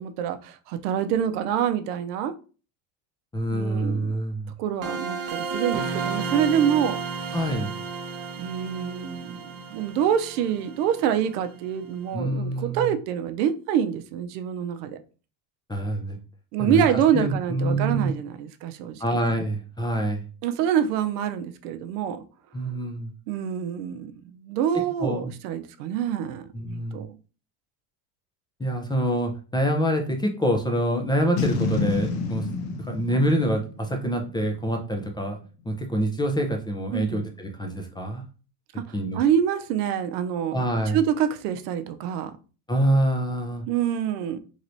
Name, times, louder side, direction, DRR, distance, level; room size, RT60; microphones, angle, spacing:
voice 1, 0.0-2.3 3.5-4.1 4.6-7.0 8.4-15.0 16.5-19.0 20.4-22.2 23.3-27.2 36.9-37.2 39.1-40.6 40.9-42.3 43.7-44.4, right 9 dB, 80° right, 0.6 m, -26 dB
voice 2, 3.3-4.5 7.3-7.7 12.1-12.9 15.7-16.2 16.6-16.9 17.1-18.1 19.0-20.2 22.5-23.1 25.0-25.3 26.5-27.0 28.6-32.4 32.9-35.4 35.6-38.2 38.9-39.2 40.5-41.0 42.7-43.6, right 1 dB, 10° left, 0.4 m, -26 dB
sound 1, 4.8-11.5, right 5 dB, 35° right, 0.6 m, -32 dB
Boom, 31.4-34.7, left 4 dB, 70° left, 0.8 m, -29 dB
3.1 x 2.9 x 2.6 m
supercardioid pair, 100°, 46 cm